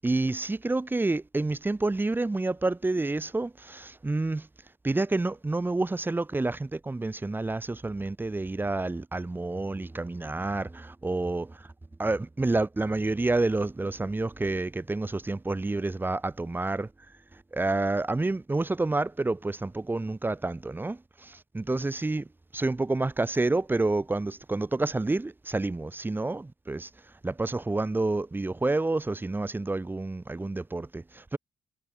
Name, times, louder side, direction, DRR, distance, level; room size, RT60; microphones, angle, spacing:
voice 1, 0.0-4.5 4.8-11.7 12.0-16.9 17.5-22.3 22.5-26.9 27.2-31.4, right 2 dB, 15° right, 7.4 m, -29 dB
cardioid pair, 160°, 15 cm